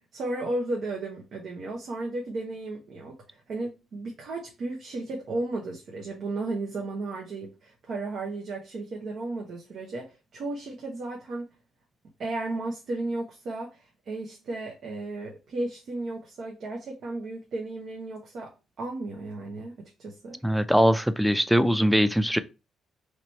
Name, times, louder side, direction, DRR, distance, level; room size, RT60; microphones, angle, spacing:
voice 1, 0.1-11.5 12.2-20.4, right 2 dB, 65° right, 0.9 m, -34 dB
voice 2, 20.4-22.4, equal, ahead, 0.4 m, -21 dB
3.2 x 3.0 x 4.0 m
cardioid pair, 90°, 0 cm